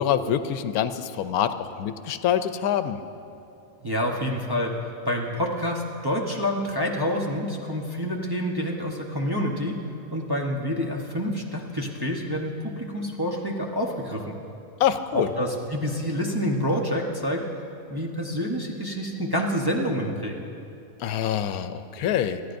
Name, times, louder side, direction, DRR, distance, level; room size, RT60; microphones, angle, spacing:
voice 1, 0.0-3.0 14.8-15.3 21.0-22.4, left 9 dB, 85° left, 11 dB, 1.1 m, -25 dB
voice 2, 3.8-4.7 5.0-9.8 10.1-14.3 15.1-17.5 17.9-20.4, equal, 20° right, -2 dB, 0.7 m, -27 dB
27.0 x 10.0 x 2.6 m, 2.6 s
omnidirectional pair, 1.5 m